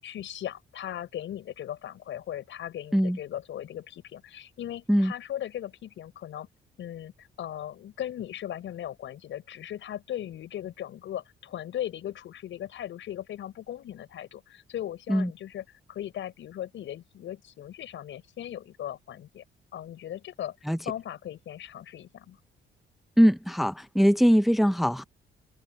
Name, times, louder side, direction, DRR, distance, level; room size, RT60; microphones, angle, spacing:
voice 1, 0.0-6.5 6.8-19.4 19.7-20.5 20.8-22.4, left 11 dB, 75° left, 6.2 m, -38 dB
voice 2, 23.2-25.0, equal, ahead, 0.8 m, -21 dB
cardioid pair, 90°, 20 cm